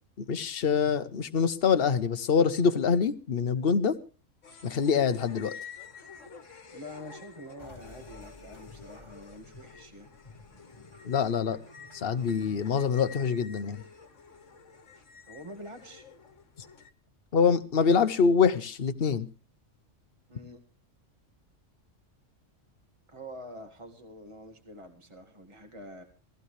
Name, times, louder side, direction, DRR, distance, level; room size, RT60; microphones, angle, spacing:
voice 1, 0.2-4.0 4.6-5.6 11.0-11.6 11.9-13.8 17.3-19.3, left 6 dB, 50° left, 10 dB, 1.1 m, -25 dB
sound 1, 4.4-16.9, left 6 dB, 75° left, 1.7 m, -50 dB
voice 2, 6.7-10.1 15.3-16.0 20.3-20.6 23.1-26.0, equal, 25° right, 5 dB, 2.1 m, -46 dB
sound 2, 7.6-13.4, left 2 dB, 20° left, 2.5 m, -52 dB
18.0 x 15.5 x 3.3 m, 0.35 s
omnidirectional pair, 1.3 m